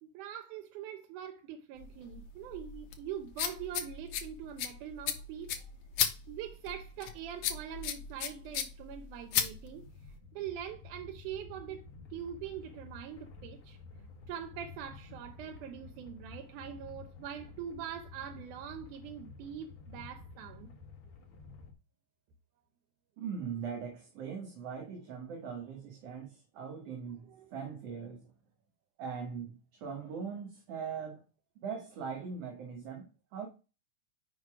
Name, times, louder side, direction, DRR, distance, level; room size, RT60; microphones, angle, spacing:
voice 1, 0.0-5.7 6.3-11.8 12.1-20.7 27.3-27.5, right 9 dB, 85° right, 2.3 m, -43 dB
sound 1, 1.8-10.2, left 9 dB, 80° left, 2.3 m, -36 dB
sound 2, 9.4-21.7, left 4 dB, 50° left, 1.6 m, -51 dB
voice 2, 23.2-28.3 29.0-31.2 31.6-33.5, right 6 dB, 60° right, 2.0 m, -41 dB
6.1 x 5.2 x 4.7 m
omnidirectional pair, 3.5 m